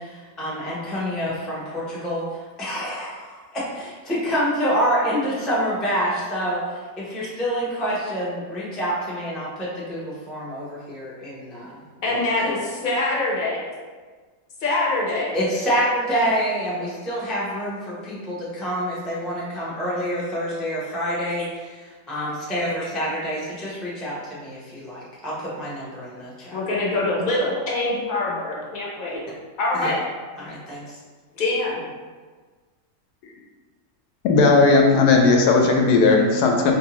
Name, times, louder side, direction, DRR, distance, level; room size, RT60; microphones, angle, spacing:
voice 1, 0.0-2.2 2.6-11.8 12.1-12.2 15.3-26.6 29.7-29.9 30.4-31.0, equal, ahead, -7 dB, 0.4 m, -27 dB
voice 2, 12.0-13.6 14.6-15.4 26.5-29.2 29.6-30.0 31.4-31.8, left 2 dB, 40° left, -4 dB, 0.7 m, -24 dB
voice 3, 34.2-36.7, left 3 dB, 80° left, 1 dB, 1.1 m, -16 dB
4.5 x 2.6 x 3.0 m, 1.4 s
omnidirectional pair, 1.7 m